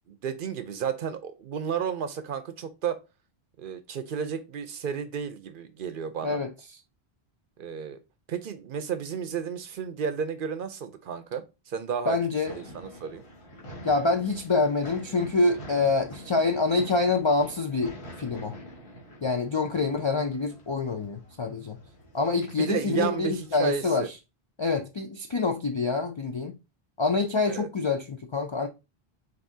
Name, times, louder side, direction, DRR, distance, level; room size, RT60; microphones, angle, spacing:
voice 1, 0.1-3.0 3.6-6.4 7.6-8.0 8.3-12.2 12.5-13.2 22.6-24.1 27.5-27.7, right 7 dB, 60° right, 0.7 m, -32 dB
voice 2, 12.1-12.6 13.8-18.6 19.2-21.8 22.1-24.1 24.6-26.5 27.0-28.7, left 3 dB, 50° left, 0.3 m, -26 dB
sound 1, 12.4-23.8, equal, 80° left, 1.9 m, -46 dB
7.2 x 2.7 x 2.7 m
omnidirectional pair, 1.1 m